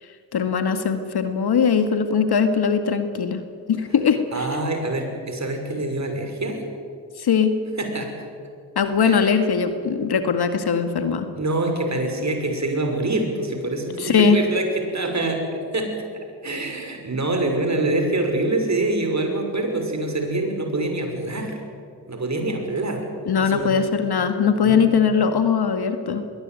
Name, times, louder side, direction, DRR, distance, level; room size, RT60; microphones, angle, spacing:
voice 1, 0.3-3.4 3.7-4.5 7.2-7.6 8.8-11.3 14.0-14.4 23.3-26.2, left 6 dB, 50° left, 9 dB, 2.0 m, -20 dB
voice 2, 4.3-6.7 7.8-8.3 9.0-9.4 11.3-21.6 22.1-23.1 23.4-23.7 24.6-24.8, right 2 dB, 35° right, 4 dB, 6.1 m, -25 dB
21.0 x 18.0 x 9.5 m, 2.4 s
hypercardioid pair, 40°, 48 cm